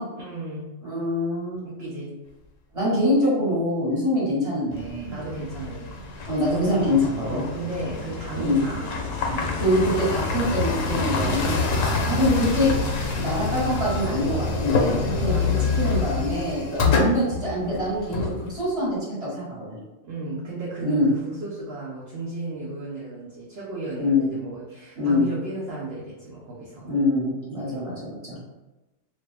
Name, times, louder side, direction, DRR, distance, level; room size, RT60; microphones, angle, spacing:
voice 1, 0.2-0.7 1.6-2.2 5.1-6.0 7.2-9.8 11.6-11.9 15.3-15.7 16.8-17.2 20.0-26.9 27.6-27.9, right 2 dB, 60° right, -6 dB, 0.8 m, -35 dB
voice 2, 0.8-1.6 2.7-5.1 6.2-7.4 8.3-8.6 9.6-15.4 15.8-19.8 20.8-21.1 24.0-24.3 25.0-25.2 26.8-28.4, left 1 dB, 25° right, -8 dB, 1.2 m, -24 dB
sound 1, 4.7-18.9, left 4 dB, 85° left, 1.0 m, -27 dB
2.5 x 2.4 x 3.3 m, 1.1 s
omnidirectional pair, 1.3 m